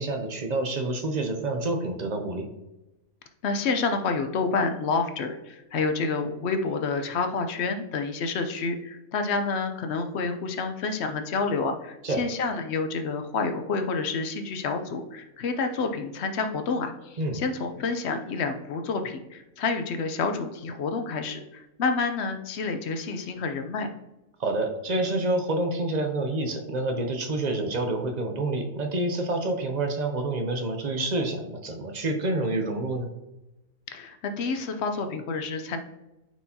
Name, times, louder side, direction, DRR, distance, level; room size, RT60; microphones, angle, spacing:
voice 1, 0.0-2.5 12.0-12.2 17.2-17.4 24.4-33.1, right 2 dB, 45° right, 4 dB, 0.5 m, -28 dB
voice 2, 3.4-23.9 33.9-35.8, left 4 dB, 60° left, 6 dB, 0.7 m, -29 dB
9.0 x 4.5 x 2.8 m, 0.97 s
omnidirectional pair, 1.6 m